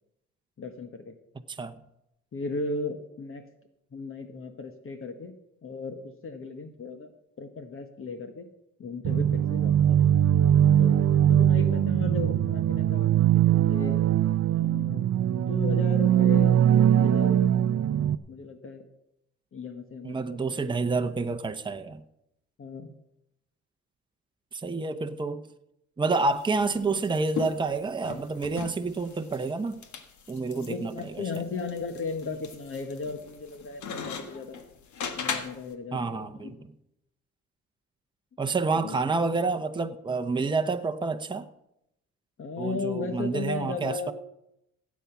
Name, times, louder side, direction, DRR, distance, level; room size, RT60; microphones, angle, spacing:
voice 1, 0.6-1.2 2.3-3.4 3.9-5.3 5.6-7.1 7.4-8.5 8.8-10.2 10.8-14.0 14.5-17.5 18.3-18.8 19.5-20.7 22.6-22.9 30.5-34.6 35.1-36.7 38.7-39.0 42.4-44.1, left 4 dB, 45° left, 1.4 m, -36 dB
sound 1, 9.0-18.1, right 10 dB, 55° right, 0.6 m, -21 dB
voice 2, 20.0-22.0 24.5-25.4 26.0-29.8 30.3-31.1 35.9-36.5 38.4-41.5 42.6-44.1, right 3 dB, 15° right, 0.9 m, -28 dB
sound 2, 26.1-35.7, left 6 dB, 70° left, 1.7 m, -39 dB
16.5 x 8.6 x 5.9 m
cardioid pair, 90°, 30 cm